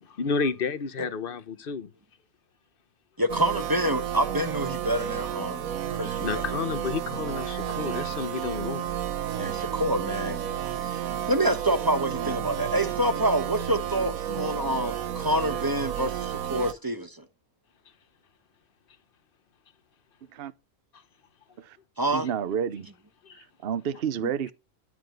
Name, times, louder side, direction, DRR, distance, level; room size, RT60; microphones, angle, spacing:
voice 1, 0.0-1.9 6.0-8.9 23.2-23.4, left 5 dB, 45° left, 1.0 m, -31 dB
voice 2, 3.2-6.4 9.4-10.4 10.7-11.0 11.3-17.2 22.0-22.3, right 1 dB, 15° right, 1.1 m, -27 dB
sound 1, 3.3-16.7, right 10 dB, 70° right, 1.3 m, -32 dB
voice 3, 22.1-22.9 23.6-24.5, right 8 dB, 50° right, 0.8 m, -29 dB
13.0 x 4.9 x 7.9 m
omnidirectional pair, 1.6 m